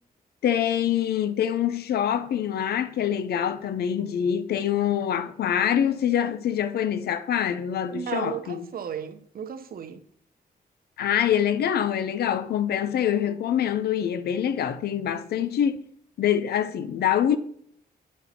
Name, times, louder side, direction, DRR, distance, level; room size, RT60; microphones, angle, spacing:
voice 1, 0.4-8.7 11.0-15.8 16.2-17.4, left 9 dB, 85° left, 0.5 m, -25 dB
voice 2, 7.9-10.0, right 8 dB, 65° right, 0.7 m, -34 dB
9.3 x 4.2 x 4.2 m
cardioid pair, 105°, 16 cm